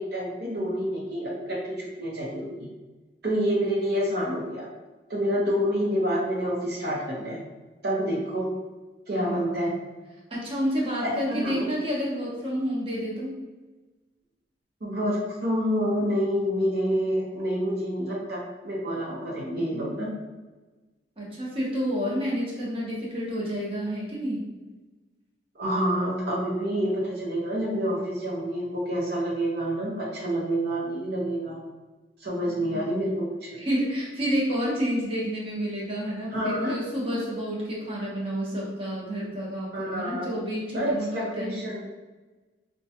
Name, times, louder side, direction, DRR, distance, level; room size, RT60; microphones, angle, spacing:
voice 1, 0.0-2.7 3.2-4.7 5.1-7.4 7.8-8.5 9.1-9.7 11.0-11.7 14.8-20.1 25.5-31.6 32.2-33.6 36.3-36.8 39.7-40.3 40.7-41.9, equal, 60° right, -4 dB, 0.8 m, -28 dB
voice 2, 9.3-9.8 10.3-13.3 21.2-24.4 32.5-32.8 33.6-41.6, equal, 30° right, -5 dB, 0.9 m, -29 dB
4.4 x 2.2 x 2.8 m, 1.2 s
head